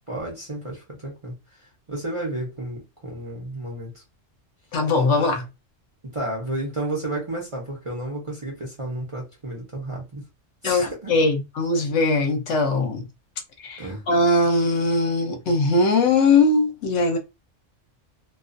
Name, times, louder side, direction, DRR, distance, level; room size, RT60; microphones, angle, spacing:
voice 1, 0.1-1.3 1.9-4.0 6.0-10.2 10.6-11.1 13.8-14.1, right 1 dB, 30° right, 0.7 m, -32 dB
voice 2, 4.7-5.5 10.6-13.0 13.6-17.2, left 2 dB, 70° left, 1.0 m, -20 dB
2.3 x 2.3 x 2.5 m
omnidirectional pair, 1.3 m